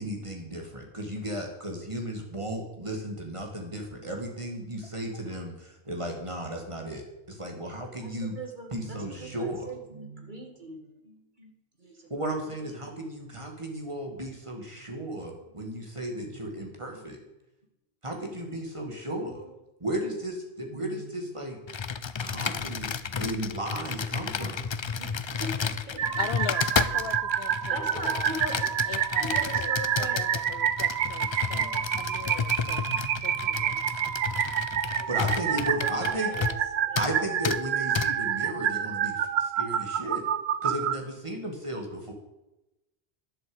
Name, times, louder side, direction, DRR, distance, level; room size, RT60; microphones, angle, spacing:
voice 1, 0.0-8.3 8.7-9.6 12.1-17.2 18.0-19.4 19.8-21.6 22.2-24.6 35.1-36.3 37.0-40.2 40.6-42.1, right 1 dB, 30° right, 1 dB, 2.5 m, -35 dB
voice 2, 8.0-13.1 14.0-14.1 14.7-15.0 16.2-17.2 19.2-20.2 20.7-21.6 24.9-26.2 27.7-28.6 29.2-30.2 31.5-32.0 32.9-34.0 34.5-37.3 38.5-38.7 40.0-40.1 41.0-41.1, right 2 dB, 50° right, 2 dB, 2.2 m, -43 dB
Computer keyboard, 21.7-36.7 37.0-37.1 37.4-37.6 38.0-38.1, left 5 dB, 40° left, 0.4 m, -32 dB
sound 1, 26.0-41.0, right 9 dB, 80° right, 1.0 m, -28 dB
voice 3, 26.2-28.3 28.9-29.7 30.1-32.8 33.2-33.8, left 8 dB, 70° left, 15 dB, 0.8 m, -40 dB
11.5 x 7.5 x 8.1 m, 0.95 s
omnidirectional pair, 1.1 m